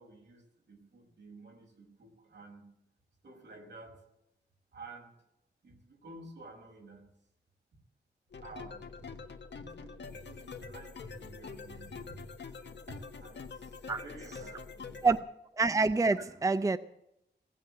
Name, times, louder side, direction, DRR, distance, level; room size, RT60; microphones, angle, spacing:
voice 1, 0.0-2.7 3.2-4.0 4.7-5.1 5.6-7.1 8.4-9.2 9.5-12.3 12.9-15.1, right 2 dB, 80° right, 1 dB, 5.5 m, -51 dB
sound 1, 8.3-15.2, left 5 dB, 80° left, 1.6 m, -45 dB
voice 2, 15.6-16.8, right 3 dB, 20° right, 13 dB, 0.5 m, -26 dB
18.5 x 8.4 x 8.8 m, 0.82 s
wide cardioid pair, 135°, 18 cm